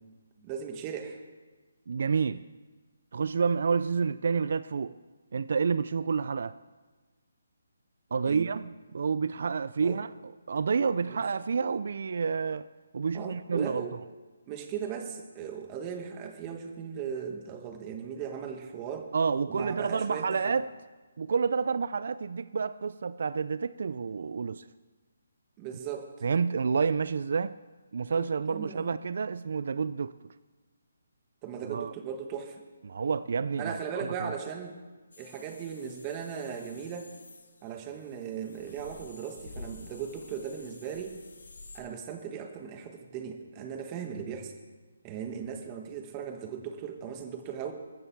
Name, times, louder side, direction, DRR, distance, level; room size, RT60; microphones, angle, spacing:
voice 1, 0.4-1.2 8.3-8.5 9.8-10.0 11.1-11.2 13.1-14.0 14.5-19.1 19.5-20.6 25.6-26.1 28.5-29.0 31.4-32.6 33.6-34.8 35.2-37.1 37.6-41.2 41.7-44.5 45.0-47.7, right 7 dB, 15° right, 5 dB, 1.2 m, -38 dB
voice 2, 1.9-2.4 3.1-5.0 5.3-6.6 8.1-12.7 12.9-13.9 19.1-20.6 21.2-24.6 26.2-27.5 27.9-30.3 31.6-31.9 32.9-34.3, right 5 dB, 50° right, 15 dB, 0.3 m, -29 dB
sound 1, 35.1-41.8, left 3 dB, 80° left, 2.2 m, -50 dB
14.0 x 14.0 x 4.5 m, 1.3 s
hypercardioid pair, 170°, 0 cm